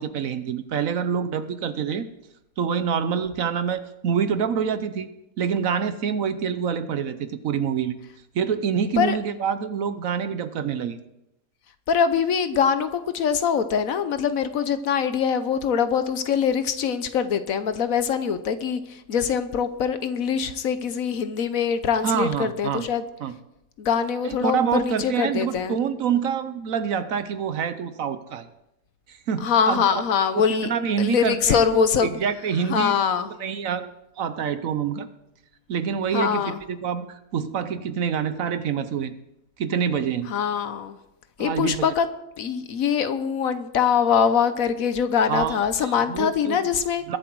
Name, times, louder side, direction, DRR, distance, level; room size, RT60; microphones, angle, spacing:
voice 1, 0.0-2.1 2.6-5.1 5.4-8.0 8.3-11.0 22.0-22.9 23.2-23.4 24.2-28.5 29.1-30.0 30.3-33.0 33.4-33.9 34.2-35.1 35.7-39.1 39.6-40.3 41.4-41.9 45.3-46.6 47.1-47.2, right 7 dB, 65° right, 12 dB, 1.1 m, -26 dB
voice 2, 11.9-23.0 23.8-25.8 29.4-30.7 31.0-32.2 32.7-33.3 36.1-36.6 40.3-41.0 41.4-42.1 42.4-47.0, left 7 dB, 65° left, 11 dB, 1.2 m, -23 dB
22.0 x 7.6 x 4.6 m, 0.87 s
omnidirectional pair, 1.7 m